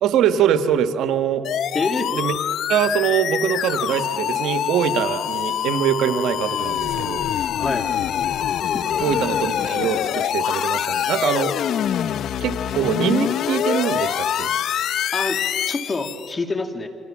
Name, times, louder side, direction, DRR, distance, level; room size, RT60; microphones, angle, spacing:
voice 1, 0.0-1.4 2.1-2.4 2.7-7.3 9.0-11.5 12.4-14.5, right 9 dB, 80° right, 9 dB, 1.4 m, -23 dB
sound 1, 1.4-16.3, left 10 dB, 70° left, 0.7 m, -25 dB
voice 2, 1.7-2.1 7.6-7.9 8.7-8.8 15.1-16.9, left 3 dB, 30° left, 6 dB, 3.0 m, -26 dB
29.5 x 25.5 x 7.4 m, 2.1 s
cardioid pair, 95°, 0 cm